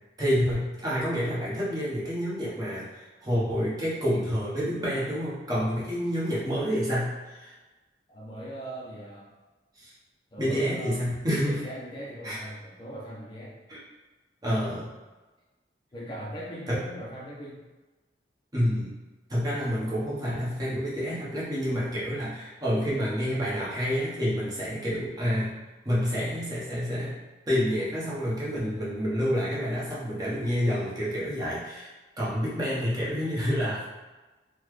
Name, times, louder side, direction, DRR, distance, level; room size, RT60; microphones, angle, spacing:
voice 1, 0.2-7.6 9.8-9.9 10.4-11.6 12.2-12.4 13.7-13.8 14.4-14.9 16.7-16.8 18.5-18.9 19.3-25.5 25.8-27.2 27.5-31.9 32.2-33.9, equal, 20° right, -7 dB, 0.8 m, -28 dB
voice 2, 8.1-9.3 10.3-11.0 11.4-13.6 15.9-17.6, right 1 dB, 25° left, -5 dB, 0.4 m, -39 dB
3.8 x 2.1 x 3.0 m, 1.2 s
head